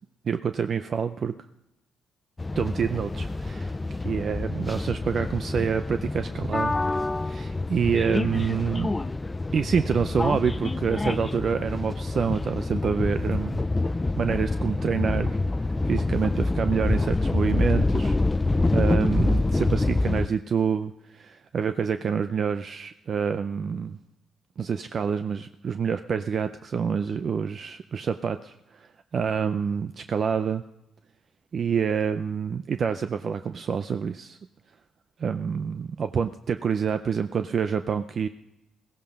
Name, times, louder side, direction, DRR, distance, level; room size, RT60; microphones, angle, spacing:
voice 1, 0.2-1.3 2.6-3.7 4.0-6.7 7.2-8.9 9.5-13.6 13.9-18.2 18.7-24.0 24.6-30.6 31.5-34.4 35.2-38.3, right 6 dB, 50° right, 10 dB, 0.5 m, -27 dB
sound 1, 2.4-20.3, left 2 dB, 20° left, 0.4 m, -26 dB
16.0 x 15.5 x 5.3 m, 0.88 s
cardioid pair, 90°, 0 cm